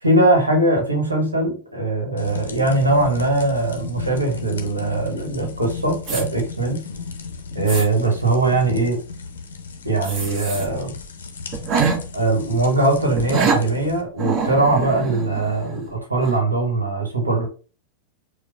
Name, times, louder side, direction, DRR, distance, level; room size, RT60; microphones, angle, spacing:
voice 1, 0.0-6.8 7.5-9.0 9.8-10.9 11.8-17.5, right 2 dB, 80° right, 1 dB, 1.1 m, -21 dB
sound 1, 2.2-14.0, left 5 dB, 65° left, 0.6 m, -35 dB
sound 2, 6.0-6.2 6.9-7.0 7.5-7.9 10.0-10.7 11.0-11.1 11.5-12.0 13.2-13.6 14.2-15.9 16.2-16.4, right 5 dB, 40° right, 1.3 m, -24 dB
4.5 x 2.2 x 2.4 m, 0.36 s
figure-of-eight pair, 90°, 0 cm